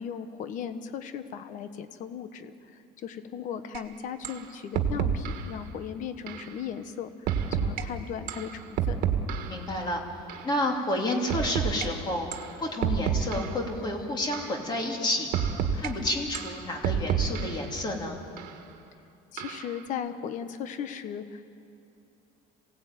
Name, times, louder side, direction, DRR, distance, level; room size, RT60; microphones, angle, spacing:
voice 1, 0.0-2.5 3.0-7.1 7.6-9.0 19.3-21.4, left 8 dB, 45° left, 10 dB, 1.2 m, -37 dB
sound 1, 3.7-3.8 4.2-4.4 4.7-5.5 6.3-6.5 7.3-7.8 8.3-9.7 10.3-10.5 11.3-11.9 12.3-12.5 12.8-13.7 14.3-14.6 15.3-15.9 16.3-17.7 18.4-18.5 19.4-19.7, right 8 dB, 55° right, 1.7 m, -29 dB
voice 2, 9.5-10.0 10.4-15.3 15.7-18.2, left 1 dB, 25° left, 1 dB, 2.9 m, -30 dB
26.5 x 17.5 x 9.2 m, 2.6 s
cardioid pair, 175°, 18 cm